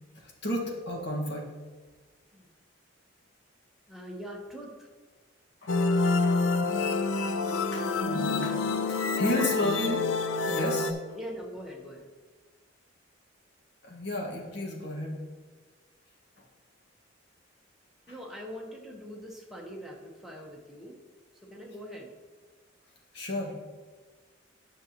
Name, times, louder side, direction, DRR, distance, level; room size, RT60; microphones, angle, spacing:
voice 1, 0.2-1.5 5.6-5.7 6.2-6.4 7.7-8.6 8.9-10.0 10.5-10.9 13.9-15.2 23.1-23.5, left 1 dB, 60° left, -2 dB, 1.8 m, -32 dB
voice 2, 3.9-4.9 9.1-9.5 11.1-12.0 18.1-21.0 21.4-22.1, equal, ahead, -2 dB, 1.1 m, -42 dB
sound 1, 5.7-10.9, left 3 dB, 85° left, 0.5 m, -27 dB
10.0 x 6.2 x 3.0 m, 1.4 s
head